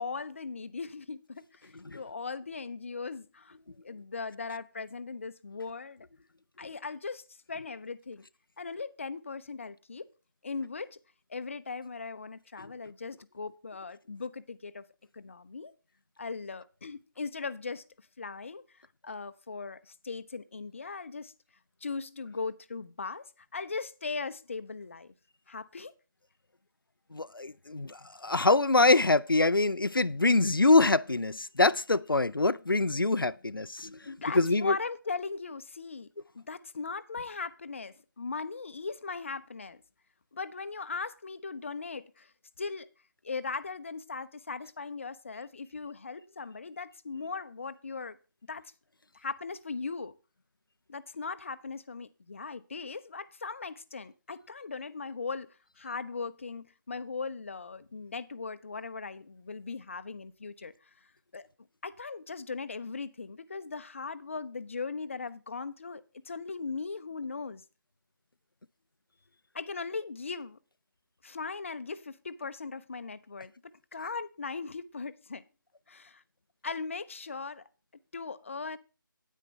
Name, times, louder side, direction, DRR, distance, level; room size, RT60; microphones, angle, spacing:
voice 1, 0.0-6.1 6.6-8.2 8.6-10.1 10.4-11.0 11.3-14.9 15.1-15.7 16.2-17.8 18.2-21.3 21.8-25.1 25.5-25.9 34.0-36.1 36.3-39.8 40.3-42.3 42.6-42.9 43.2-48.2 48.5-48.7 49.1-50.1 50.9-55.5 55.8-60.7 61.3-61.5 61.8-67.6 69.5-70.6 71.2-75.4 75.9-76.2 76.6-77.6 78.1-78.8, left 4 dB, 35° left, 0.6 m, -39 dB
voice 2, 27.1-34.0 34.3-34.7, left 2 dB, 85° left, 0.4 m, -25 dB
9.7 x 9.3 x 3.2 m
figure-of-eight pair, 155°, 11 cm